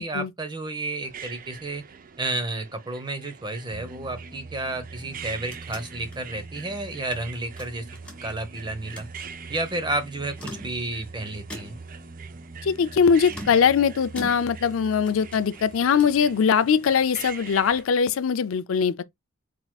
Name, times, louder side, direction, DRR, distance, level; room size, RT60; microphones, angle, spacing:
voice 1, 0.0-1.8 2.2-7.8 8.2-9.1 9.5-11.8, right 2 dB, 20° right, 0.9 m, -31 dB
sound 1, 1.0-17.8, right 7 dB, 45° right, 0.5 m, -45 dB
sound 2, 3.7-16.9, right 2 dB, 65° right, 2.0 m, -44 dB
sound 3, 5.0-7.2 7.6-8.5 8.8-9.2 10.2-11.1 11.5-12.0 13.2-14.8 15.1-16.3, left 1 dB, 5° left, 1.6 m, -42 dB
voice 2, 12.6-19.0, left 6 dB, 80° left, 0.4 m, -21 dB
4.6 x 4.0 x 2.3 m
head